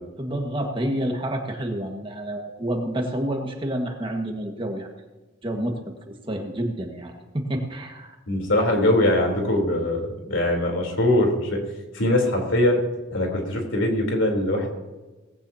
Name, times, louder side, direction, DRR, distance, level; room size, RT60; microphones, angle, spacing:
voice 1, 0.2-4.9 5.4-5.8 6.1-8.2, right 1 dB, 25° right, 2 dB, 1.7 m, -29 dB
voice 2, 8.3-11.6 11.9-12.8 13.1-14.7, left 1 dB, 70° left, 1 dB, 3.7 m, -22 dB
18.5 x 16.5 x 2.9 m, 1.2 s
head